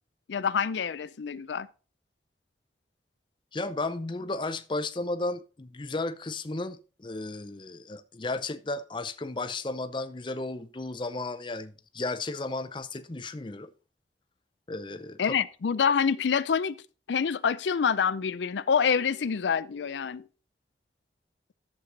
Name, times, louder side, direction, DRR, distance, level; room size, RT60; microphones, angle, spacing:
voice 1, 0.3-1.7 15.2-16.7 17.1-20.2, left 6 dB, 85° left, 0.5 m, -26 dB
voice 2, 3.5-13.7 14.7-15.3, left 2 dB, 25° left, 0.6 m, -34 dB
11.5 x 7.5 x 3.9 m
head